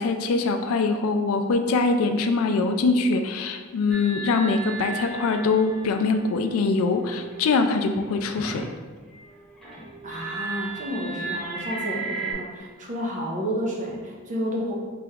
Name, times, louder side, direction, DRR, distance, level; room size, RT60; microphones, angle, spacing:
voice 1, 0.0-8.7, left 3 dB, 70° left, 6 dB, 0.3 m, -23 dB
sound 1, 3.9-8.7 9.1-12.3, right 4 dB, ahead, 0.8 m, -36 dB
voice 2, 10.0-14.7, equal, 35° right, -2 dB, 0.7 m, -30 dB
3.4 x 2.9 x 3.5 m, 1.5 s
head